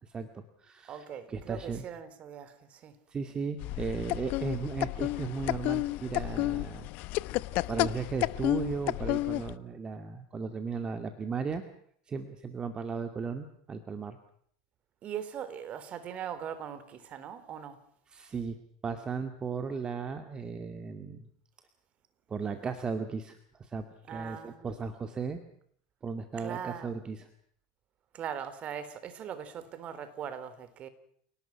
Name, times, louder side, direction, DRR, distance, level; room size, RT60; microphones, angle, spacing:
voice 1, 0.0-1.8 3.1-6.9 7.7-11.6 12.1-14.2 18.1-18.6 18.8-21.3 22.3-25.4 26.0-27.3, right 5 dB, 25° right, 2.4 m, -36 dB
voice 2, 0.9-3.0 15.0-17.8 24.1-24.7 26.4-27.0 28.1-30.9, right 8 dB, 40° right, 3.8 m, -40 dB
sound 1, 3.6-9.5, left 19 dB, 55° left, 0.9 m, -31 dB
29.5 x 18.5 x 6.0 m
hypercardioid pair, 95°, 3 cm